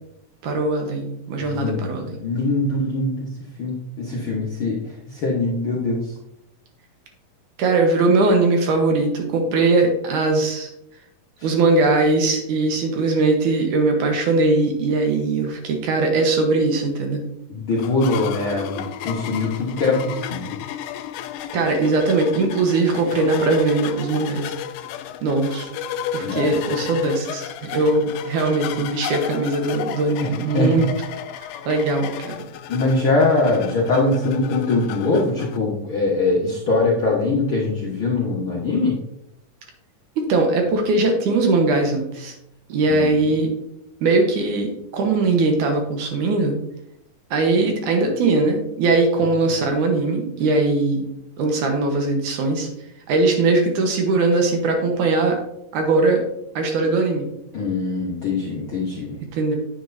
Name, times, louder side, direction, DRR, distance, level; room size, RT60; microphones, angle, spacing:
voice 1, 0.4-2.2 7.6-10.7 11.4-17.2 21.5-24.5 25.2-25.7 26.1-30.8 31.7-32.4 40.2-42.3 42.7-43.5 44.0-46.6 47.3-51.1 51.4-52.7 53.1-55.4 55.7-56.2 56.6-57.3 59.3-59.6, right 3 dB, 70° right, 3 dB, 2.4 m, -20 dB
voice 2, 1.4-1.9 2.2-3.3 3.6-6.1 11.4-11.5 17.5-20.5 26.2-26.5 30.2-30.9 32.7-39.0 42.9-43.3 57.5-59.2, left 2 dB, 60° left, -4 dB, 1.3 m, -22 dB
sound 1, 17.8-35.6, left 10 dB, 85° left, 2.3 m, -33 dB
9.1 x 8.2 x 2.6 m, 0.80 s
omnidirectional pair, 4.0 m